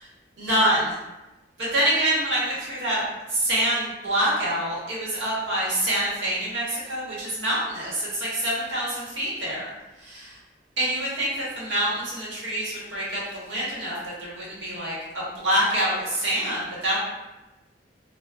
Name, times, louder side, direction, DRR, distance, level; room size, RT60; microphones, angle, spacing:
voice 1, 0.4-1.0 1.6-3.0 3.3-9.7 10.0-10.3 10.8-17.0, right 1 dB, 80° right, -7 dB, 1.1 m, -26 dB
2.3 x 2.2 x 3.4 m, 1.1 s
head